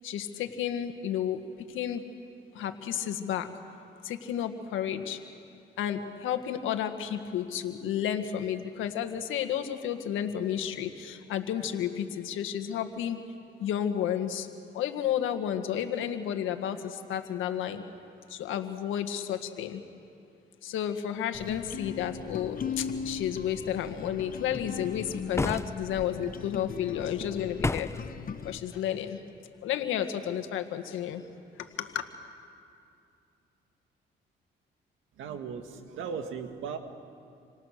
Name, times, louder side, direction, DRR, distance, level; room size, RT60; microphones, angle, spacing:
voice 1, 0.0-1.4 1.7-2.0 2.6-3.5 4.0-5.2 5.8-13.2 13.6-14.5 14.7-16.8 17.1-17.8 18.4-19.8 20.6-27.9 28.4-29.2 29.6-31.2 31.8-31.9, left 10 dB, 90° left, 7 dB, 1.7 m, -31 dB
sound 1, 21.3-28.6, left 6 dB, 45° left, 1.0 m, -38 dB
sound 2, 25.3-26.1 27.6-28.1, left 2 dB, 15° left, 0.7 m, -30 dB
voice 2, 35.1-36.8, right 6 dB, 85° right, 6 dB, 2.0 m, -37 dB
28.5 x 25.5 x 6.6 m, 2.5 s
cardioid pair, 90°, 20 cm